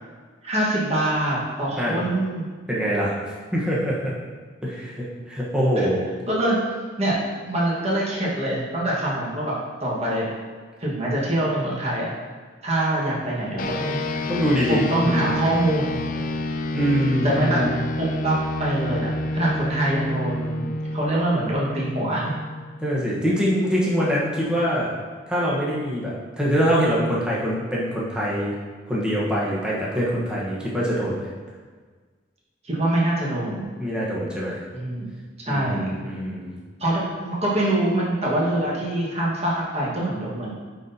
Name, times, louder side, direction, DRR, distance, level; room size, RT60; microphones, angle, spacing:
voice 1, 0.4-2.5 5.7-5.9 6.3-6.7 7.0-7.2 7.4-10.3 10.8-12.1 12.6-14.3 14.7-16.0 17.2-22.3 32.6-33.7 34.7-35.1 35.5-35.9 36.8-40.5, right 1 dB, 35° right, -6 dB, 1.4 m, -24 dB
voice 2, 2.7-3.1 3.5-4.1 4.6-6.1 14.3-15.4 16.7-17.8 22.8-24.9 25.3-28.5 28.9-31.3 33.8-34.6 35.5-36.6, equal, 5° right, -7 dB, 1.1 m, -24 dB
sound 1, 13.6-23.3, left 1 dB, 45° left, 0.4 m, -29 dB
9.2 x 4.0 x 2.8 m, 1.5 s
head